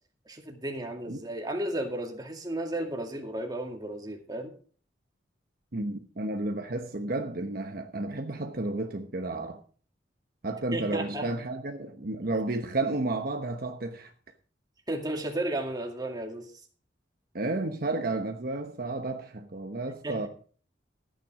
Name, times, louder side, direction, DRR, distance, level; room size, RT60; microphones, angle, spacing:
voice 1, 0.3-4.5 10.7-11.3 12.2-12.3 14.9-16.5 20.0-20.3, right 1 dB, 20° right, 2.2 m, -33 dB
voice 2, 5.7-9.6 10.4-14.1 17.3-20.3, right 2 dB, 55° right, 1.1 m, -32 dB
14.0 x 9.2 x 5.0 m
head